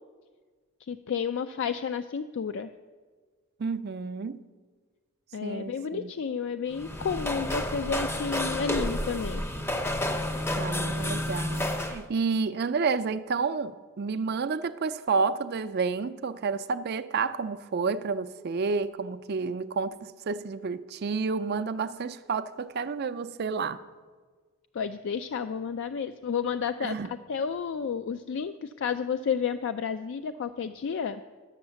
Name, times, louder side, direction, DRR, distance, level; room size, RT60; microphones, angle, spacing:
voice 1, 0.9-2.7 5.3-9.4 24.7-31.2, left 6 dB, 55° left, 0.3 m, -31 dB
voice 2, 3.6-4.4 5.4-6.1 10.6-23.8 26.8-27.1, right 4 dB, 45° right, 0.4 m, -30 dB
sound 1, 6.7-12.0, left 1 dB, 10° left, 0.6 m, -30 dB
11.5 x 7.1 x 6.9 m
head